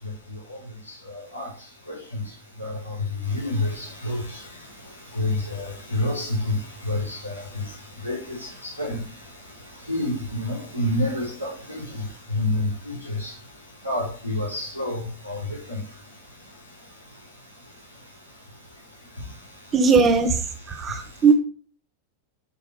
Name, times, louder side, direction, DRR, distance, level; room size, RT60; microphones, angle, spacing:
voice 1, 0.0-13.4 13.8-16.0 19.1-19.4 19.8-19.9 20.6-21.2, left 1 dB, 90° left, -5 dB, 5.0 m, -30 dB
voice 2, 19.7-20.3 20.7-21.3, right 5 dB, 25° right, 6 dB, 1.4 m, -18 dB
8.0 x 6.1 x 5.1 m, 0.41 s
figure-of-eight pair, 90°, 0 cm